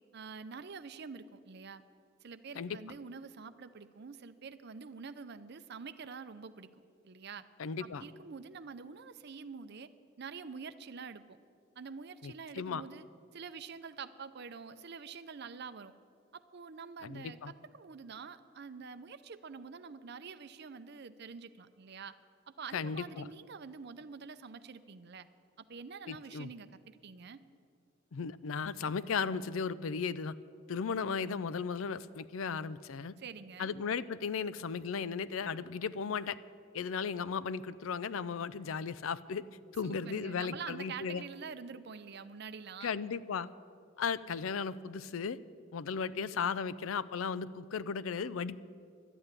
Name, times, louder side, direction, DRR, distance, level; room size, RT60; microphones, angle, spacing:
voice 1, 0.1-1.8 2.2-6.7 7.0-7.4 7.8-9.9 10.2-11.4 11.8-13.0 13.3-15.9 16.3-22.1 22.5-25.3 25.7-27.4 33.2-33.7 39.8-43.0, right 5 dB, 55° right, 12 dB, 0.6 m, -46 dB
voice 2, 7.6-8.0 12.2-12.8 17.0-17.5 22.7-23.3 26.1-26.5 28.1-30.3 30.7-33.1 33.6-36.4 36.7-39.4 39.7-41.2 42.8-43.5 44.0-45.4 45.7-48.6, left 6 dB, 80° left, 17 dB, 0.5 m, -36 dB
11.5 x 8.9 x 9.7 m, 2.2 s
head